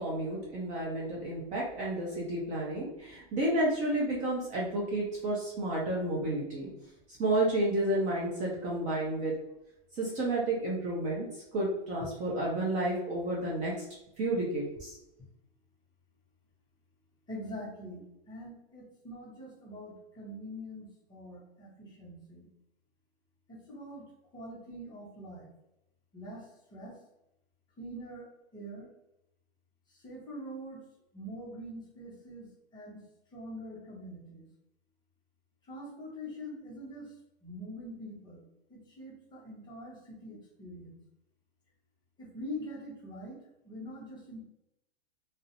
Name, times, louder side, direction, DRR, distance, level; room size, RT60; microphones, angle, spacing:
voice 1, 0.0-6.7 7.2-9.3 9.9-13.8 14.2-14.9, right 1 dB, 25° right, -4 dB, 0.5 m, -31 dB
voice 2, 17.3-22.5 23.5-24.1 24.3-25.5 26.1-27.0 27.8-28.9 29.9-30.8 31.1-32.5 32.7-33.0 33.3-34.4 35.7-37.1 37.4-38.4 38.7-40.9 42.2-43.4 43.6-44.4, equal, 15° left, -4 dB, 0.7 m, -44 dB
2.4 x 2.0 x 2.8 m, 0.86 s
hypercardioid pair, 145°, 30 cm